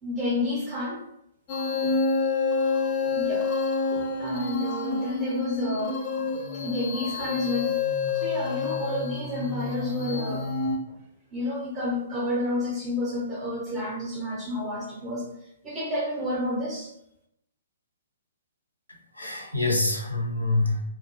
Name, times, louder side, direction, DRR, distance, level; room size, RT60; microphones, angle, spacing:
voice 1, 0.0-1.0 1.8-2.0 3.0-3.5 3.9-6.0 6.6-7.8 8.1-10.5 10.9-11.0 11.3-15.3 15.6-16.9, left 2 dB, 20° right, -4 dB, 0.5 m, -30 dB
sound 1, 1.5-10.8, left 4 dB, 35° left, 0.4 m, -28 dB
voice 2, 18.9-20.8, left 2 dB, 85° left, 0 dB, 0.6 m, -26 dB
2.2 x 2.1 x 2.9 m, 0.79 s
figure-of-eight pair, 120°, 0 cm